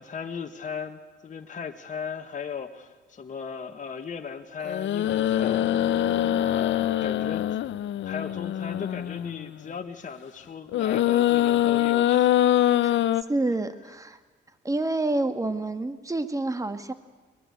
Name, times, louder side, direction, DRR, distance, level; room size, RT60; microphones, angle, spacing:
voice 1, 0.0-6.0 6.4-7.5 8.0-12.3, left 6 dB, 40° left, 4 dB, 1.6 m, -37 dB
sound 1, 4.6-9.5 10.7-13.2, left 12 dB, 70° left, 0.8 m, -24 dB
voice 2, 13.3-14.2 14.6-16.9, right 2 dB, 15° right, 10 dB, 1.8 m, -28 dB
23.0 x 21.0 x 8.2 m, 1.3 s
cardioid pair, 90°, 20 cm